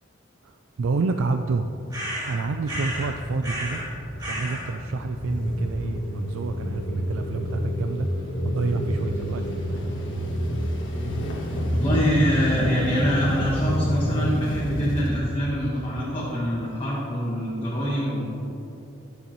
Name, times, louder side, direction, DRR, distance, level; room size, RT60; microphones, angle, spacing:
voice 1, 0.4-1.7 2.1-3.8 4.3-8.1 8.4-9.9, right 4 dB, 90° right, 6 dB, 0.4 m, -29 dB
sound 1, 1.7-15.9, equal, 70° left, 1.5 m, -29 dB
sound 2, 1.9-3.1 3.4-3.9 4.2-4.7, equal, 20° right, 1.9 m, -32 dB
voice 2, 11.8-18.2, equal, 25° left, -6 dB, 1.2 m, -24 dB
13.5 x 6.9 x 3.1 m, 2.9 s
head